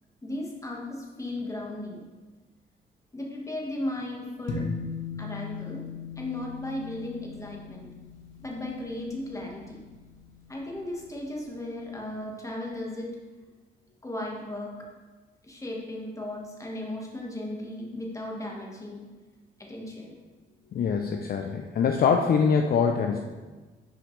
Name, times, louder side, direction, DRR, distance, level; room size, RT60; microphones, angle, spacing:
voice 1, 0.2-2.1 3.1-4.6 5.2-5.8 6.2-7.9 8.4-9.8 10.5-13.1 14.0-14.7 15.4-19.0 19.6-20.1, left 1 dB, 15° left, -1 dB, 1.3 m, -36 dB
sound 1, 4.5-11.1, left 5 dB, 80° left, 1.0 m, -39 dB
voice 2, 20.7-23.2, left 6 dB, 50° left, 4 dB, 0.5 m, -24 dB
6.4 x 4.9 x 3.2 m, 1.3 s
cardioid pair, 90°, 20 cm